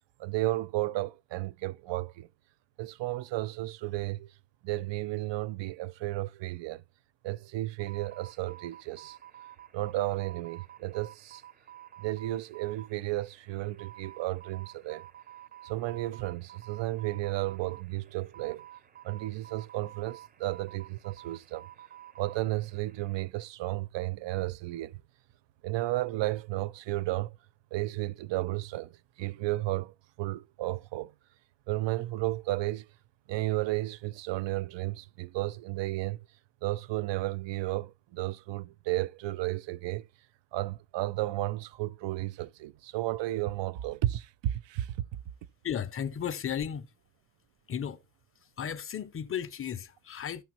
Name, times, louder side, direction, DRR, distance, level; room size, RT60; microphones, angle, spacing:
voice 1, 0.2-2.3 2.8-4.3 4.6-6.8 7.2-9.2 9.7-11.4 12.0-15.1 15.6-18.7 19.0-21.7 22.2-25.0 25.6-27.4 27.7-31.1 31.7-32.9 33.3-36.2 36.6-40.1 40.5-44.9, right 17 dB, 70° right, 0.6 m, -33 dB
sound 1, 7.8-23.2, right 12 dB, 20° right, 0.4 m, -51 dB
voice 2, 45.6-46.9 47.7-48.0 48.6-50.4, left 8 dB, 30° left, 0.5 m, -34 dB
14.0 x 5.8 x 3.0 m
cardioid pair, 160°, 45 cm